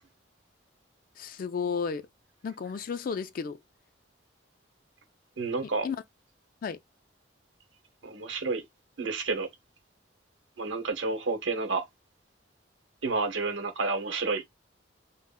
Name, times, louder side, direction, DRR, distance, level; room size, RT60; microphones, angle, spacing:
voice 1, 1.2-2.1 2.4-3.6 5.8-6.0 6.6-6.8, left 6 dB, 50° left, 0.3 m, -32 dB
voice 2, 5.4-5.9 8.0-8.6 9.0-9.5 10.6-11.9 13.0-14.4, right 3 dB, 85° right, 0.8 m, -30 dB
2.3 x 2.0 x 3.5 m
head